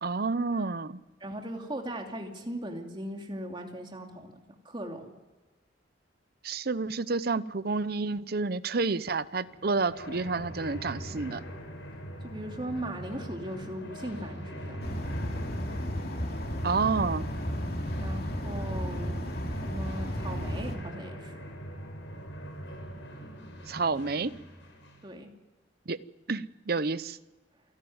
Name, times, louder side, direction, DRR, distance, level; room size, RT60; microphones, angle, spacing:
voice 1, 0.0-1.0 6.4-11.4 16.6-17.2 23.7-24.3 25.9-26.0 26.3-27.2, right 4 dB, 55° right, 15 dB, 0.7 m, -29 dB
voice 2, 1.2-4.3 4.6-5.1 12.2-14.8 18.0-19.3 19.6-21.5 25.0-25.3, right 1 dB, 25° right, 2 dB, 2.8 m, -38 dB
sound 1, 9.3-25.1, equal, 90° left, 5.9 m, -42 dB
sound 2, 14.8-20.8, equal, 55° left, 2.8 m, -33 dB
28.0 x 12.0 x 9.6 m, 1.2 s
head